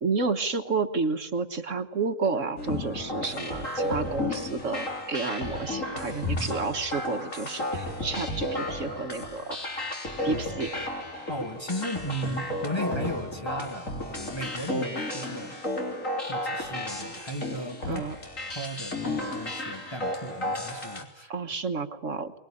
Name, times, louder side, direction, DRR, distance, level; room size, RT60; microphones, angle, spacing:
voice 1, 0.0-9.6 10.2-10.7 17.8-18.1 21.3-22.3, right 4 dB, 55° right, 7 dB, 1.6 m, -30 dB
sound 1, 2.6-21.0, left 1 dB, 55° left, 4.1 m, -33 dB
voice 2, 10.3-10.7 11.3-15.6 16.2-18.0 18.5-21.3, equal, 20° left, 2 dB, 1.7 m, -36 dB
24.0 x 23.0 x 9.9 m, 0.80 s
omnidirectional pair, 1.6 m